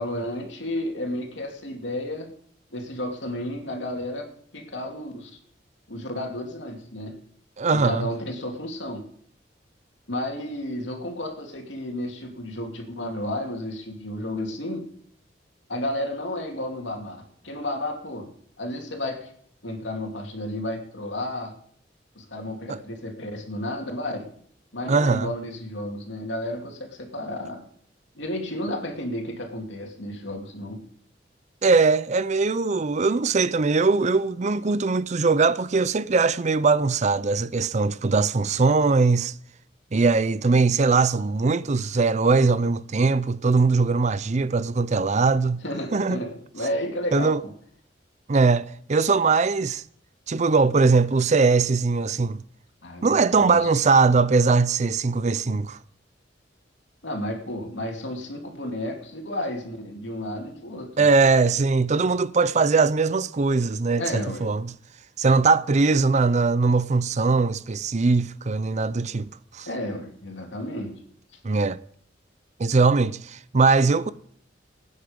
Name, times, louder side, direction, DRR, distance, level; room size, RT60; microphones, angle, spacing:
voice 1, 0.0-2.3 2.7-4.3 4.5-5.3 5.9-7.2 7.7-9.0 10.1-14.8 15.7-17.2 17.4-18.3 18.6-19.3 19.6-21.5 22.1-24.3 24.7-27.7 28.1-30.8 45.6-47.5 52.8-53.7 57.0-60.9 64.0-64.5 69.7-71.0, left 1 dB, 80° left, 2.7 m, -32 dB
voice 2, 7.6-8.1 22.7-22.8 24.9-25.3 31.6-39.3 39.9-45.6 45.9-46.2 47.1-47.4 48.3-49.8 50.3-52.4 53.0-55.8 61.0-64.7 65.2-69.7 71.4-71.8 72.6-74.1, right 4 dB, 40° right, 0.5 m, -21 dB
19.0 x 9.6 x 5.2 m
head